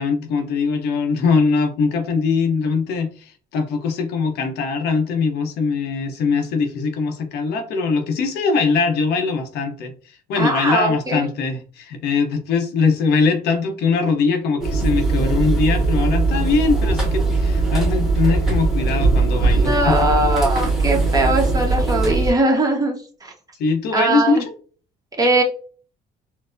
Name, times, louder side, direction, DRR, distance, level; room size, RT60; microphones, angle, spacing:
voice 1, 0.0-20.2 23.6-24.5, left 4 dB, 75° left, 5 dB, 0.7 m, -21 dB
voice 2, 10.4-11.2 19.5-23.3 23.9-24.3 25.2-25.4, right 1 dB, 20° right, 1 dB, 0.9 m, -20 dB
sound 1, 14.6-22.3, right 3 dB, ahead, 1.2 m, -20 dB
4.3 x 2.0 x 2.5 m, 0.41 s
cardioid pair, 110°, 17 cm